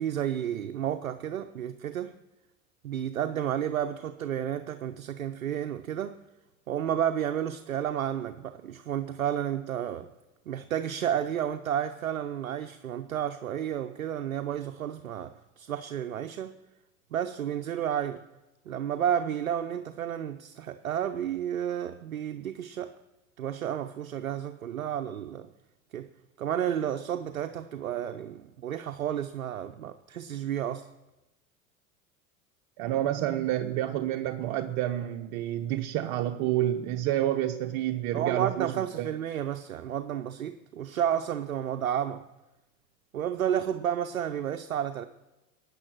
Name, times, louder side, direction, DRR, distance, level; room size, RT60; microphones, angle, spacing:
voice 1, 0.0-2.2 2.8-6.2 6.7-10.1 10.5-16.6 17.1-18.2 18.7-22.9 23.4-25.5 25.9-26.1 26.4-30.9 38.1-42.3 43.1-45.0, right 10 dB, 90° right, 0.7 m, -31 dB
voice 2, 32.8-39.1, right 13 dB, 55° right, 0.9 m, -29 dB
16.0 x 9.5 x 6.1 m
hypercardioid pair, 80°, 41 cm